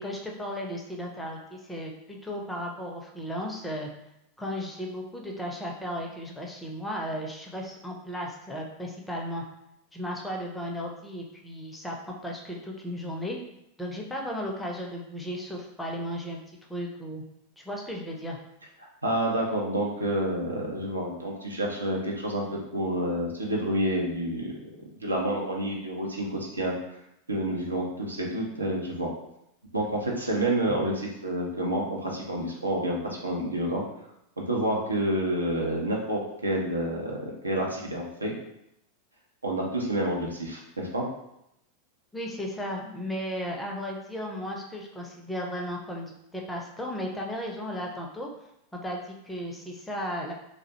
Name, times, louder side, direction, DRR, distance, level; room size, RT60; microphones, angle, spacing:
voice 1, 0.0-3.9 4.4-9.4 9.9-12.0 12.2-13.4 13.8-16.4 16.7-17.2 17.6-18.4 42.1-48.3 48.8-50.3, equal, 5° left, 0 dB, 0.5 m, -35 dB
voice 2, 19.0-24.5 25.0-26.7 27.3-29.1 29.7-33.8 34.4-37.2 37.4-38.3 39.4-41.0, right 1 dB, 80° right, -2 dB, 0.5 m, -29 dB
2.3 x 2.0 x 2.7 m, 0.81 s
figure-of-eight pair, 90°, 0 cm